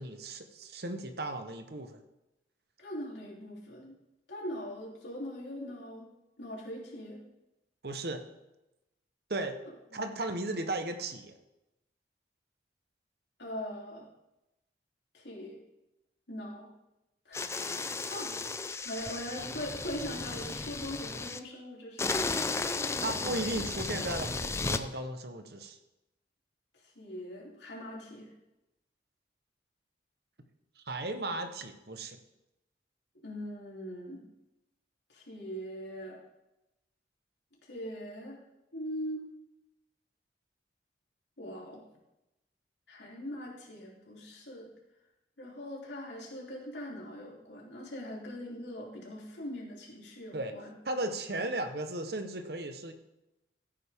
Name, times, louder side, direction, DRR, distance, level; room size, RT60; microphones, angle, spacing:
voice 1, 0.0-2.0 7.8-8.2 9.3-9.6 9.9-11.3 23.0-25.8 30.9-32.2 50.3-50.6 50.8-52.9, right 2 dB, 60° right, 7 dB, 1.0 m, -36 dB
voice 2, 2.8-3.9 4.3-6.1 6.4-7.2 9.9-10.1 13.4-14.1 15.1-15.6 16.3-16.7 17.2-17.8 18.1-18.4 18.8-22.2 23.1-23.4 26.8-28.3 33.2-34.2 35.1-36.2 37.6-38.4 38.7-39.3 41.4-41.8 42.9-44.7 45.4-50.7, equal, 75° left, -3 dB, 3.3 m, -41 dB
sound 1, 17.3-21.4 22.0-24.8, left 3 dB, 15° left, 0.4 m, -34 dB
15.0 x 8.7 x 3.6 m, 0.94 s
head